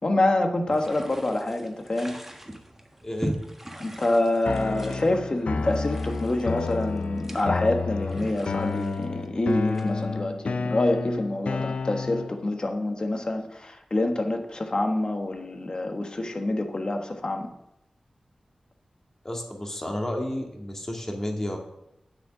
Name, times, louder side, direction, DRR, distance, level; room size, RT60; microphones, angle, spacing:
voice 1, 0.0-2.2 3.8-17.5, left 2 dB, 45° left, 5 dB, 1.4 m, -26 dB
sound 1, 0.7-10.2, right 1 dB, 10° right, 1.4 m, -40 dB
voice 2, 3.0-3.3 19.2-21.6, left 1 dB, 20° left, 1 dB, 2.1 m, -31 dB
sound 2, 4.4-12.4, left 4 dB, 80° left, 0.6 m, -31 dB
9.3 x 7.7 x 6.2 m, 0.85 s
wide cardioid pair, 95°, 2 cm